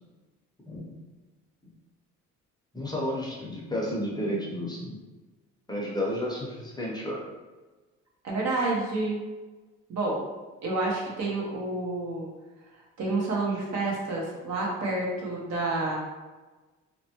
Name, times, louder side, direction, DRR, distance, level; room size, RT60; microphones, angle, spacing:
voice 1, 2.7-5.0 5.7-7.2, equal, 15° left, -4 dB, 0.7 m, -31 dB
voice 2, 8.2-9.2 9.9-10.2 10.6-12.3 13.0-16.0, right 2 dB, 60° right, -4 dB, 0.9 m, -29 dB
2.9 x 2.1 x 2.9 m, 1.2 s
cardioid pair, 90°, 30 cm